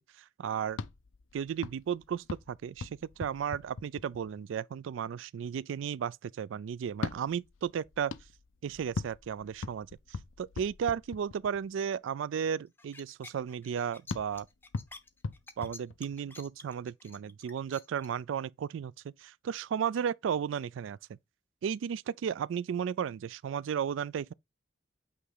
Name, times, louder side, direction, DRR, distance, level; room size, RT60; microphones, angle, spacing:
voice 1, 0.4-0.8 1.3-8.1 8.6-9.9 10.4-14.5 15.6-21.2 21.6-24.3, right 7 dB, 80° right, 0.3 m, -34 dB
sound 1, 0.7-4.5 6.9-11.8 14.1-16.5, left 4 dB, 85° left, 0.6 m, -42 dB
sound 2, 12.8-18.1, left 3 dB, 10° left, 0.6 m, -49 dB
8.4 x 3.1 x 3.7 m
head